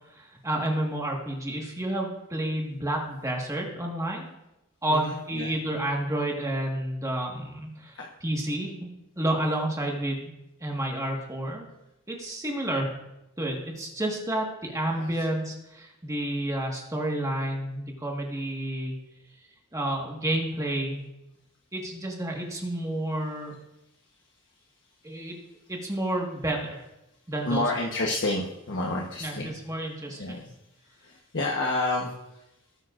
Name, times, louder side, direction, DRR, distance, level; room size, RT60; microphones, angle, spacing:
voice 1, 0.1-4.3 4.8-8.9 9.2-10.3 10.6-11.6 12.1-13.0 13.4-18.9 19.7-21.0 21.7-23.6 25.0-25.4 25.7-26.8 27.3-27.6 29.2-30.4, right 1 dB, 15° right, -1 dB, 1.6 m, -30 dB
voice 2, 4.9-5.5 8.0-8.1 14.9-15.2 27.4-29.5 30.1-30.5 30.8-32.4, left 2 dB, 55° left, -1 dB, 1.1 m, -30 dB
18.5 x 9.4 x 2.5 m, 0.92 s
head